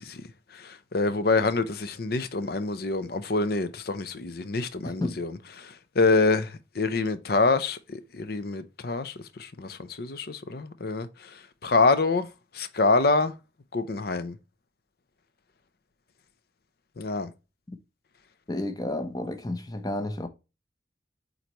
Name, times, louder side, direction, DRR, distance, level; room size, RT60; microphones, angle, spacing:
voice 1, 0.6-5.3 5.6-11.1 11.6-12.3 12.5-13.3 13.7-14.3 17.0-17.3, left 3 dB, 55° left, 0.6 m, -26 dB
voice 2, 4.8-5.2 18.5-20.3, left 1 dB, 20° left, 0.8 m, -31 dB
7.9 x 4.0 x 3.0 m
head